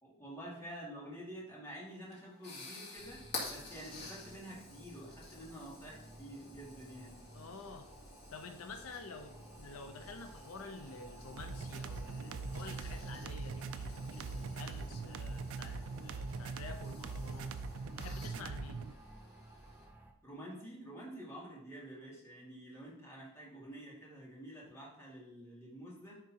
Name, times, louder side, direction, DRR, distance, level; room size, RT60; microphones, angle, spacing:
voice 1, 0.0-7.2 20.2-26.2, equal, 15° left, -6 dB, 2.2 m, -49 dB
sound 1, 1.9-19.8, left 2 dB, 55° left, 2.3 m, -51 dB
sound 2, 3.0-20.1, right 1 dB, 10° right, 0.5 m, -56 dB
voice 2, 7.3-7.9 8.3-17.5 18.0-18.8, left 4 dB, 90° left, 5 dB, 0.6 m, -49 dB
sound 3, 11.4-18.9, right 4 dB, 75° right, 0.4 m, -42 dB
10.5 x 3.7 x 2.8 m, 0.77 s
head